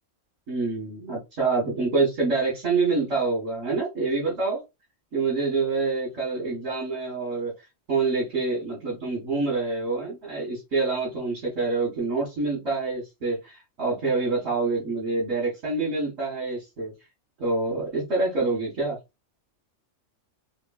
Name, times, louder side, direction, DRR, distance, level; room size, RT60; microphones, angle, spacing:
voice 1, 0.5-4.6 5.1-7.5 7.9-16.9 17.4-19.0, right 3 dB, 75° right, 2.2 m, -26 dB
4.2 x 3.1 x 2.5 m
omnidirectional pair, 1.3 m